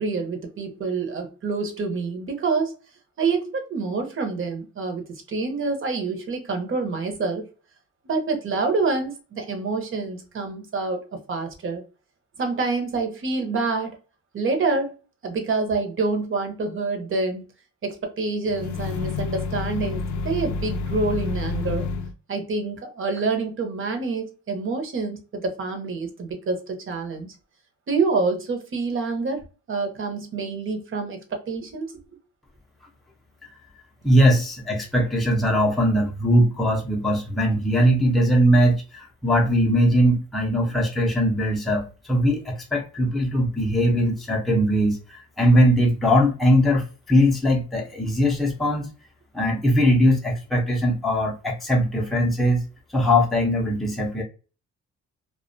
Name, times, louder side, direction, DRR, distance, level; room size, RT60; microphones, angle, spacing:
voice 1, 0.0-2.7 3.2-7.5 8.0-11.8 12.4-14.0 14.3-14.9 15.2-17.4 17.8-21.9 22.3-27.3 27.9-29.4 29.7-31.9, right 4 dB, 45° right, 0.8 m, -27 dB
sound 1, 18.5-22.1, left 4 dB, 75° left, 0.5 m, -29 dB
voice 2, 34.0-48.9 49.3-52.6 52.9-54.2, equal, ahead, 0.6 m, -20 dB
2.4 x 2.2 x 2.5 m
cardioid pair, 90°, 30 cm